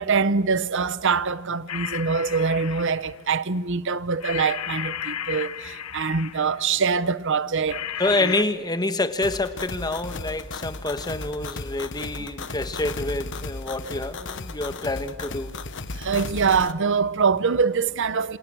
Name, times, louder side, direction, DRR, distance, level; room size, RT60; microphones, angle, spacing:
voice 1, 0.0-7.8 8.2-8.3 12.2-12.3 16.0-18.4, right 5 dB, 60° right, 0.8 m, -24 dB
sound 1, 1.7-3.2 4.2-6.6 7.7-8.4, left 9 dB, 90° left, 1.0 m, -33 dB
voice 2, 8.0-15.5, left 2 dB, 20° left, 1.3 m, -27 dB
sound 2, 9.2-16.7, left 3 dB, 60° left, 1.3 m, -35 dB
28.0 x 27.5 x 6.3 m
head